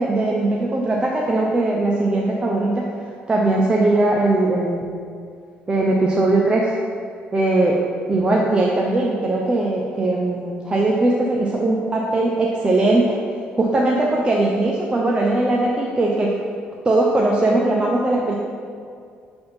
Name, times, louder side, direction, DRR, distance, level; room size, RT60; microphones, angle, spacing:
voice 1, 0.0-2.9 3.3-4.9 5.7-6.7 7.3-7.8 8.1-13.2 13.6-16.4 16.8-18.4, right 2 dB, 25° right, -2 dB, 0.5 m, -19 dB
6.7 x 3.4 x 4.1 m, 2.3 s
cardioid pair, 105°, 4 cm